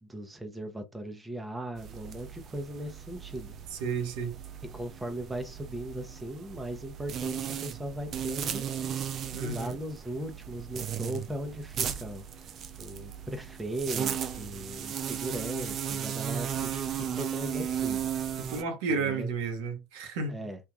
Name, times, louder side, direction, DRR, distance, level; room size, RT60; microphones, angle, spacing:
voice 1, 0.0-3.5 4.6-8.6 9.4-12.2 12.8-18.1 18.9-19.3 20.3-20.6, right 1 dB, 10° right, 0.9 m, -38 dB
sound 1, 1.8-18.6, right 9 dB, 45° right, 0.5 m, -36 dB
voice 2, 3.7-4.3 9.3-9.8 18.4-20.4, right 4 dB, 70° right, 0.9 m, -32 dB
3.3 x 2.6 x 2.4 m
hypercardioid pair, 70°, 0 cm